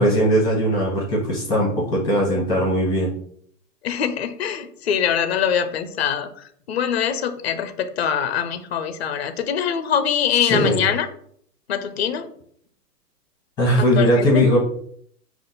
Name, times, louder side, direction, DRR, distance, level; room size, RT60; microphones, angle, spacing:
voice 1, 0.0-3.1 10.4-10.8 13.6-14.6, equal, 10° left, -4 dB, 0.9 m, -19 dB
voice 2, 3.8-6.3 6.7-11.1 11.7-12.3 13.8-14.3, left 8 dB, 45° left, 11 dB, 0.4 m, -23 dB
5.2 x 2.5 x 3.8 m, 0.64 s
hypercardioid pair, 150°, 50 cm